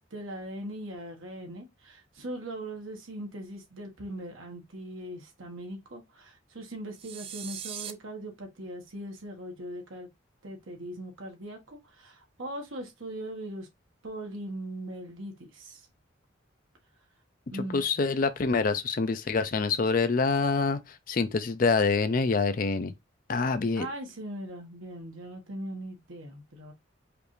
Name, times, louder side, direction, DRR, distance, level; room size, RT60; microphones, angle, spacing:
voice 1, 0.0-10.1 10.4-13.7 14.0-15.9 17.5-17.8 23.7-26.7, right 1 dB, 80° right, 1.4 m, -40 dB
sound 1, 7.0-7.9, right 9 dB, 30° right, 0.3 m, -39 dB
voice 2, 17.7-22.9 23.3-23.9, left 4 dB, 45° left, 0.4 m, -26 dB
5.0 x 2.5 x 3.2 m
head